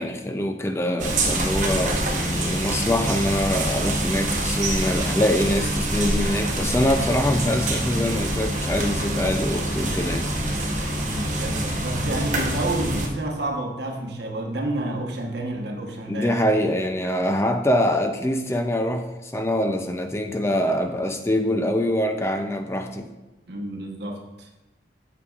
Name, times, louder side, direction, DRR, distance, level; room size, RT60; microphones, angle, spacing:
voice 1, 0.0-10.3 16.1-23.1, left 1 dB, 15° left, 6 dB, 0.4 m, -24 dB
sound 1, 1.0-13.1, right 1 dB, 45° right, 0.9 m, -25 dB
voice 2, 11.0-16.4 23.5-24.5, right 1 dB, 70° right, 1 dB, 1.1 m, -29 dB
8.2 x 6.8 x 2.4 m, 1.0 s
head